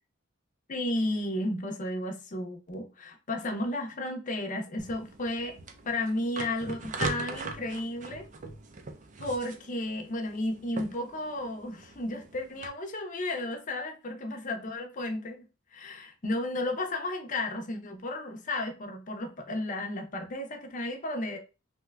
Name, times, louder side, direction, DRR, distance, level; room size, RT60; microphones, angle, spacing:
voice 1, 0.7-5.6 5.8-8.3 9.2-15.4 15.7-21.4, left 1 dB, 40° left, 0.6 m, -33 dB
sound 1, 4.8-12.7, right 3 dB, 40° right, 0.4 m, -41 dB
2.8 x 2.2 x 3.3 m
head